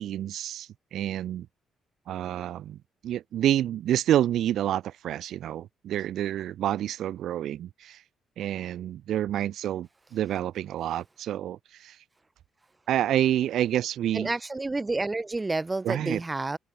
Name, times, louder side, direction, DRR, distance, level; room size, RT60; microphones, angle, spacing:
voice 1, 0.0-1.5 2.1-2.8 3.0-8.0 8.4-12.0 12.9-14.3 15.8-16.2, right 11 dB, 75° right, 0.9 m, -28 dB
voice 2, 14.1-16.6, right 2 dB, 20° right, 0.7 m, -29 dB
open air
cardioid pair, 90°, 0 cm